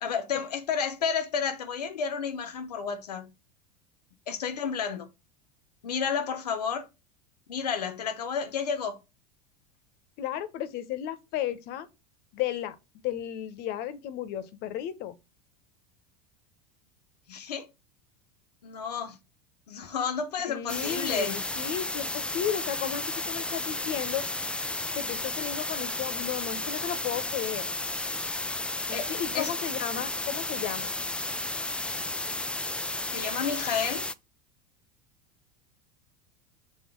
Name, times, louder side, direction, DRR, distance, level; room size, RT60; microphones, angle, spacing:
voice 1, 0.0-3.3 4.3-5.1 5.8-6.9 7.5-9.0 17.3-17.7 18.6-19.2 19.7-21.4 28.9-29.1 29.3-29.5 33.1-34.0, left 6 dB, 80° left, 1.2 m, -31 dB
voice 2, 10.2-11.9 12.3-12.8 13.0-15.1 20.5-24.2 24.9-27.7 28.9-30.9, left 10 dB, 55° left, 1.1 m, -34 dB
sound 1, 20.7-34.1, left 2 dB, 5° left, 0.4 m, -33 dB
6.6 x 3.1 x 4.6 m
hypercardioid pair, 85°, 20 cm